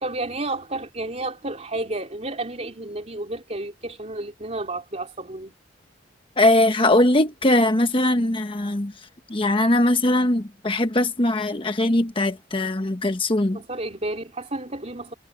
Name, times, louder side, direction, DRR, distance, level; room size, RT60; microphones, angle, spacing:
voice 1, 0.0-5.5 13.5-15.1, right 2 dB, 35° right, 3.8 m, -31 dB
voice 2, 6.4-8.9 9.3-13.6, left 1 dB, 30° left, 1.2 m, -20 dB
head